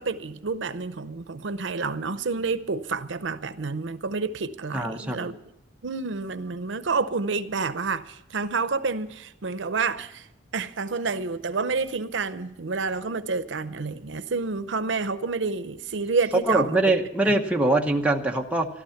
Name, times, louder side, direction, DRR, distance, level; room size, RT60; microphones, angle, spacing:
voice 1, 0.0-5.4 5.8-10.3 10.5-16.8 17.2-17.3, right 4 dB, 80° right, 0.7 m, -29 dB
voice 2, 4.7-5.3 16.5-18.7, right 2 dB, 5° right, 0.9 m, -23 dB
14.5 x 12.5 x 5.8 m
head